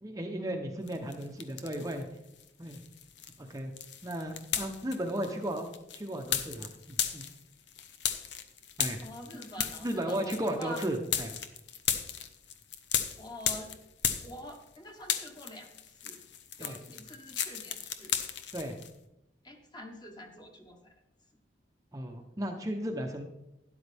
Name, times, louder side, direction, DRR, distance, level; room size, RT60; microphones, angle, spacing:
voice 1, 0.0-2.1 2.6-2.8 3.4-3.7 4.0-7.2 8.8-9.0 9.6-11.3 16.6-16.8 18.5-18.7 21.9-23.2, right 1 dB, 20° right, 3 dB, 0.8 m, -35 dB
sound 1, 0.9-2.0 2.4-14.8 15.0-18.9, left 8 dB, 75° left, 0.9 m, -35 dB
voice 2, 9.0-10.9 13.2-13.7 14.2-16.2 16.6-18.2 19.4-20.9, left 1 dB, 25° left, 2 dB, 1.5 m, -46 dB
12.5 x 10.5 x 3.5 m, 0.87 s
head